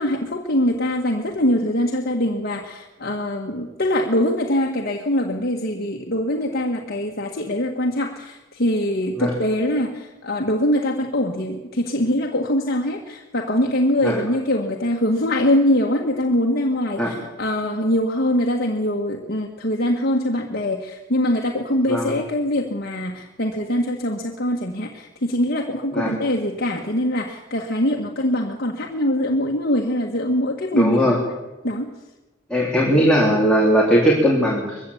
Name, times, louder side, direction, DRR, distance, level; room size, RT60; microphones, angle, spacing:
voice 1, 0.0-31.2 31.6-32.0, left 1 dB, 50° left, 1 dB, 1.7 m, -23 dB
voice 2, 30.7-31.2 32.5-34.8, equal, 5° left, -4 dB, 3.5 m, -18 dB
22.0 x 15.5 x 8.5 m, 1.1 s
head